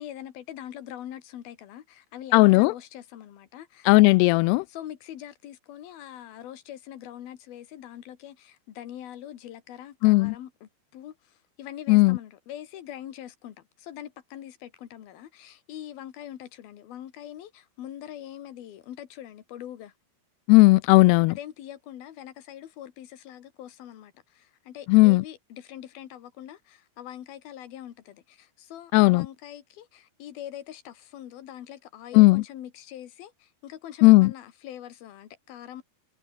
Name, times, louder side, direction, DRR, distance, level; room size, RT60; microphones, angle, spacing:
voice 1, 0.0-4.0 4.7-19.9 21.3-35.8, left 11 dB, 60° left, 3.5 m, -43 dB
voice 2, 2.3-2.7 3.9-4.6 10.0-10.4 11.9-12.2 20.5-21.3 24.9-25.2 28.9-29.3 32.1-32.4 34.0-34.3, left 23 dB, 85° left, 2.4 m, -16 dB
omnidirectional pair, 5.1 m